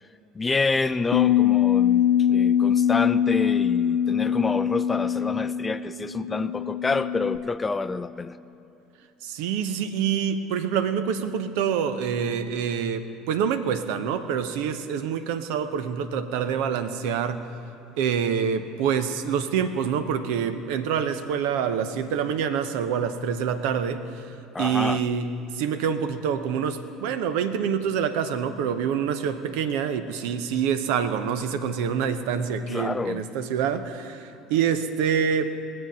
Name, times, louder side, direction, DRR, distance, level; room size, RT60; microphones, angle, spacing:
voice 1, 0.3-8.4 24.5-25.0 32.7-33.3, left 3 dB, 20° left, 13 dB, 0.4 m, -28 dB
Bass guitar, 1.1-7.4, left 10 dB, 60° left, 0.8 m, -22 dB
voice 2, 9.2-17.5 18.0-24.3 24.6-25.3 25.5-35.6, right 7 dB, 65° right, 10 dB, 0.7 m, -26 dB
21.0 x 7.6 x 5.3 m, 2.8 s
figure-of-eight pair, 65°, 0 cm